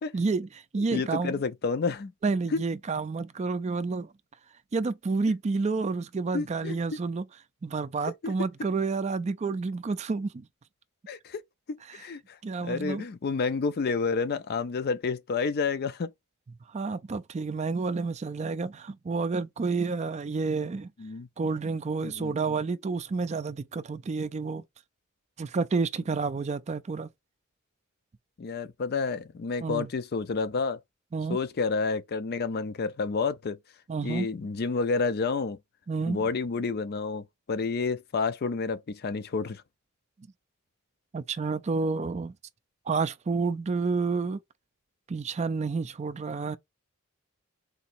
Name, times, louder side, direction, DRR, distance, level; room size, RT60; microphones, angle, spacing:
voice 1, 0.1-1.3 2.2-4.1 4.7-7.3 7.6-10.5 11.9-12.0 12.4-13.0 16.7-20.9 21.4-24.6 25.4-27.1 29.6-29.9 31.1-31.4 33.9-34.3 35.9-36.2 41.1-42.3 42.9-44.4 45.1-46.6, right 4 dB, 30° right, 0.4 m, -29 dB
voice 2, 0.9-2.1 6.3-7.0 8.2-8.5 11.1-11.4 11.7-12.4 12.6-16.1 21.0-21.3 22.0-22.3 28.4-30.8 31.3-33.6 34.0-35.6 36.1-39.6, left 4 dB, 45° left, 0.4 m, -30 dB
3.9 x 2.8 x 4.3 m
head